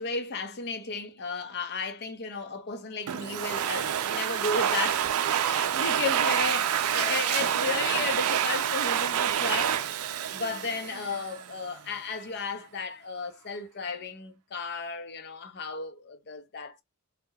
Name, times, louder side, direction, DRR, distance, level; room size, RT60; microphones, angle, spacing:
voice 1, 0.0-5.1 5.4-9.8 10.3-16.8, left 4 dB, 50° left, 0.5 m, -34 dB
Domestic sounds home sounds, 3.1-11.5, right 9 dB, 90° right, 0.4 m, -27 dB
2.7 x 2.1 x 2.2 m
head